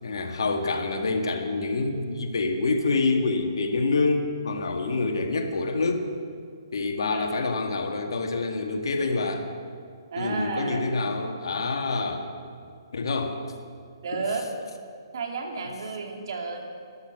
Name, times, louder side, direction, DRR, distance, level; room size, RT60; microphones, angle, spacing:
voice 1, 0.0-6.1 6.7-9.5 10.2-12.3 12.9-13.4, left 3 dB, 70° left, 4 dB, 1.9 m, -27 dB
voice 2, 7.1-7.4 10.1-10.9 14.0-14.4 15.1-16.6, right 4 dB, 60° right, 2 dB, 2.6 m, -31 dB
13.0 x 11.5 x 7.9 m, 2.2 s
hypercardioid pair, 150°, 3 cm